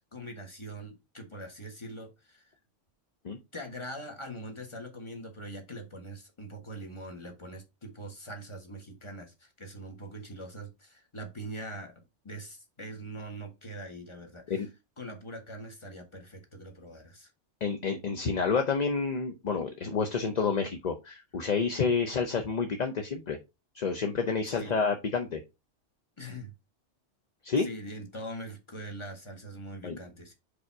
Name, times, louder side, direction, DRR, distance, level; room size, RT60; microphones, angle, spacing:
voice 1, 0.1-2.4 3.5-14.7 15.0-17.3 24.4-24.7 26.2-26.5 27.6-30.3, right 1 dB, 25° left, 4 dB, 1.4 m, -42 dB
voice 2, 17.6-23.4 23.7-25.4 27.4-27.7 29.8-30.0, left 5 dB, 40° left, 6 dB, 0.7 m, -29 dB
5.2 x 4.3 x 4.6 m, 0.24 s
omnidirectional pair, 1.3 m